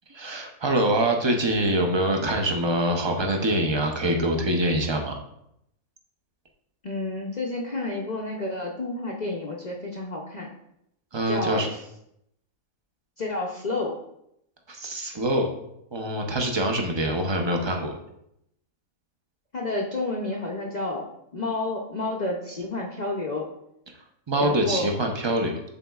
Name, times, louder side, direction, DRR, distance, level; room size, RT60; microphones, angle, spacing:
voice 1, 0.1-5.1 11.1-11.7 14.7-15.5 15.9-17.9 23.9-25.6, right 1 dB, 35° right, 2 dB, 0.4 m, -25 dB
voice 2, 6.8-10.5 11.3-11.7 13.2-14.0 19.5-21.0 21.3-23.5 24.4-24.9, left 2 dB, 50° left, -1 dB, 0.5 m, -30 dB
11.0 x 4.0 x 2.3 m, 0.77 s
omnidirectional pair, 1.5 m